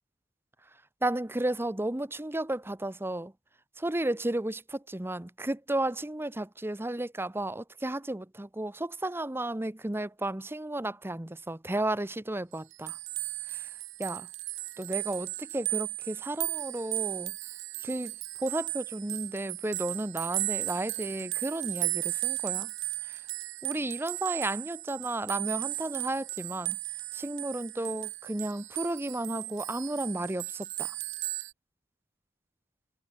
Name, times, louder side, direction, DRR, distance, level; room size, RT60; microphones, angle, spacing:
voice 1, 1.0-3.3 3.8-13.0 13.5-13.7 14.0-14.3 14.8-17.3 17.8-18.1 18.4-22.7 23.1-23.2 23.6-26.8 27.1-30.9, right 1 dB, 10° right, 0.7 m, -33 dB
sound 1, 12.5-31.5, right 18 dB, 70° right, 1.6 m, -35 dB
head